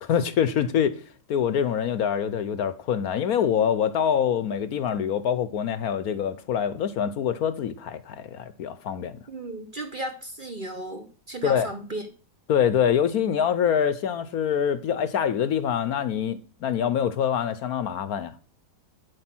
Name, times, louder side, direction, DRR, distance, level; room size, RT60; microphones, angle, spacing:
voice 1, 0.0-0.9 1.3-9.2 11.4-11.7 12.5-18.3, left 8 dB, 65° left, 1.1 m, -25 dB
voice 2, 9.3-12.1, right 1 dB, 35° right, 1.0 m, -35 dB
9.5 x 7.9 x 6.0 m
omnidirectional pair, 1.8 m